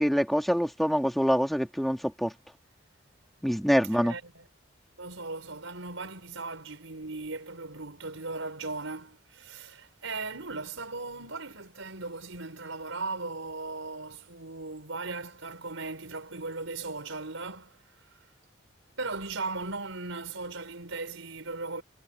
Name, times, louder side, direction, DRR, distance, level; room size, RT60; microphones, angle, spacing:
voice 1, 0.0-2.3 3.4-4.1, equal, ahead, 2.7 m, -25 dB
voice 2, 3.9-4.5 5.0-17.8 19.0-21.8, right 3 dB, 90° right, 5.4 m, -38 dB
head